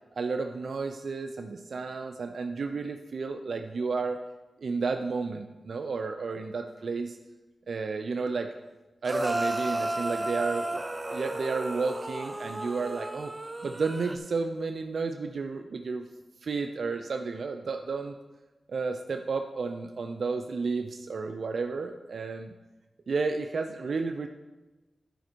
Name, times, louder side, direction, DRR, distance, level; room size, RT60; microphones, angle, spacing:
voice 1, 0.2-4.2 4.6-7.2 7.7-8.5 9.0-10.8 11.1-13.3 13.6-16.1 16.4-18.1 18.7-22.5 23.1-24.3, right 4 dB, 75° right, 6 dB, 0.5 m, -32 dB
sound 1, 9.0-14.2, right 1 dB, 25° right, 0.7 m, -33 dB
11.5 x 5.2 x 4.5 m, 1.1 s
cardioid pair, 45°, 0 cm